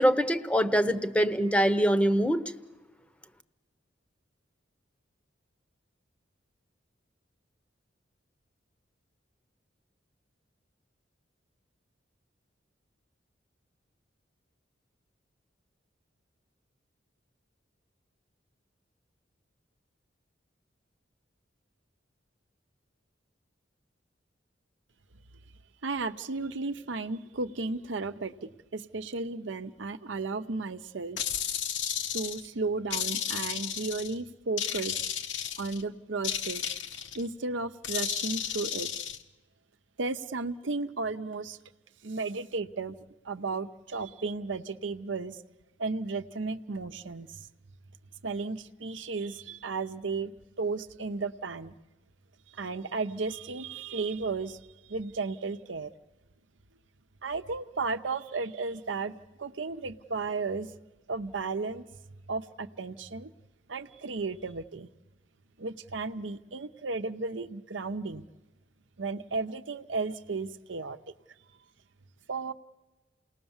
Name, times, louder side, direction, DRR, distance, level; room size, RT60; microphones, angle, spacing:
voice 1, 0.0-2.4, equal, 5° left, 11 dB, 0.8 m, -24 dB
voice 2, 25.8-31.2 31.8-35.1 35.6-36.6 37.1-38.9 40.0-41.6 42.0-43.0 43.2-45.4 45.8-47.5 48.2-51.7 52.5-54.6 54.9-55.9 57.2-60.7 61.1-61.8 62.3-63.3 63.7-64.9 65.6-68.3 69.0-71.0 72.3-72.5, right 3 dB, 85° right, 9 dB, 0.8 m, -34 dB
sound 1, 31.2-32.5 32.9-34.1 34.6-35.8 36.2-37.2 37.8-39.2, left 9 dB, 80° left, 1.2 m, -33 dB
29.0 x 19.0 x 7.3 m, 1.1 s
head